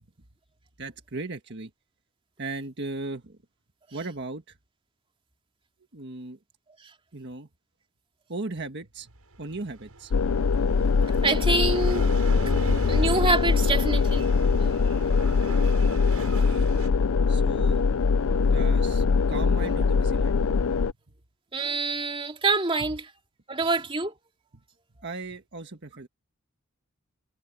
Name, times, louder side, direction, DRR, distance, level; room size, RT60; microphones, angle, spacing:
voice 1, 0.8-1.7 2.4-3.4 3.9-4.6 5.9-6.4 7.1-7.5 8.3-10.1 16.1-16.7 17.3-17.8 18.4-20.4 25.0-26.1, right 3 dB, 50° right, 1.6 m, -37 dB
sound 1, 9.3-16.9, right 1 dB, 85° right, 7.0 m, -37 dB
sound 2, 10.1-20.9, left 5 dB, 70° left, 0.5 m, -22 dB
voice 2, 11.0-12.0 12.6-14.2 14.9-15.0 21.5-23.1 23.5-24.1, right 3 dB, 25° right, 2.6 m, -26 dB
head